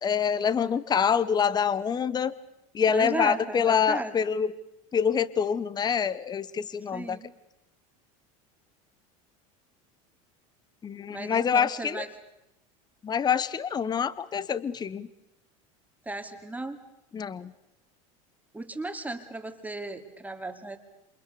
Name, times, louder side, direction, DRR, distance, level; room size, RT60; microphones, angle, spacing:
voice 1, 0.0-2.4 2.7-4.5 4.9-7.2 10.8-12.0 13.0-15.1 17.1-17.5, left 7 dB, 25° left, 18 dB, 1.0 m, -26 dB
voice 2, 2.9-4.2 6.9-7.3 11.1-12.1 16.0-16.8 18.5-20.8, right 2 dB, 10° right, 6 dB, 2.7 m, -35 dB
29.0 x 27.5 x 6.9 m, 0.87 s
supercardioid pair, 105°, 17 cm